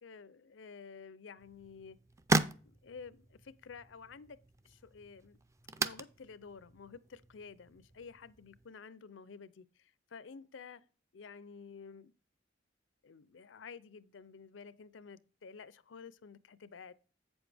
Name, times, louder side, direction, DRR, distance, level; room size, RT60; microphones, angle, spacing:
voice 1, 0.0-2.0 2.6-4.4 4.6-5.4 5.8-10.9 11.1-12.1 13.0-16.9, left 5 dB, 85° left, 0.5 m, -51 dB
sound 1, 1.4-8.7, right 3 dB, 15° right, 0.4 m, -38 dB
8.3 x 7.1 x 3.4 m
head